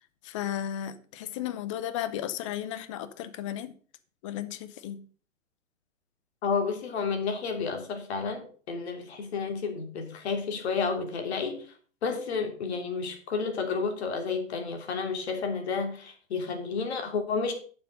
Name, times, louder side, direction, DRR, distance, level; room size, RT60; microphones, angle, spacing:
voice 1, 0.2-3.7 4.2-5.0, left 11 dB, 25° left, 0.7 m, -34 dB
voice 2, 6.4-11.7 12.0-17.5, left 5 dB, 55° left, 3.1 m, -31 dB
10.5 x 7.1 x 5.4 m
hypercardioid pair, 150°, 39 cm